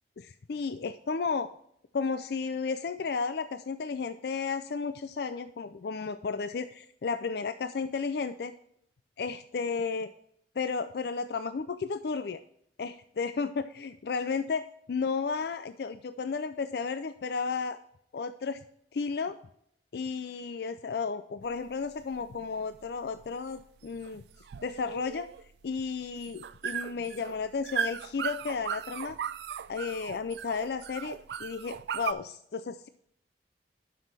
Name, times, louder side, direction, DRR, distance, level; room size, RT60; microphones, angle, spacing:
voice 1, 0.2-1.5 1.9-8.5 9.2-10.1 10.6-12.4 12.8-17.8 18.1-18.6 18.9-19.4 19.9-24.2 24.6-25.3 25.6-29.2 29.7-32.9, left 5 dB, 60° left, 10 dB, 0.4 m, -33 dB
sound 1, 21.4-32.1, right 8 dB, 65° right, 0.3 m, -38 dB
11.5 x 6.2 x 3.4 m, 0.69 s
head